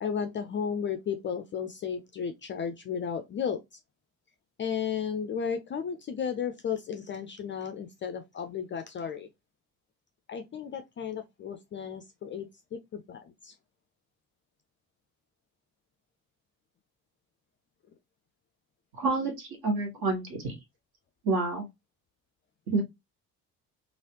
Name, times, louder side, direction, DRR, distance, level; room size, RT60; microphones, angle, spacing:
voice 1, 0.0-3.6 4.6-9.3 10.3-13.5, left 7 dB, 25° left, 0.4 m, -34 dB
voice 2, 19.0-20.5 21.2-21.6 22.7-22.8, right 3 dB, 50° right, 1.5 m, -28 dB
3.1 x 2.4 x 2.8 m
figure-of-eight pair, 45°, 46 cm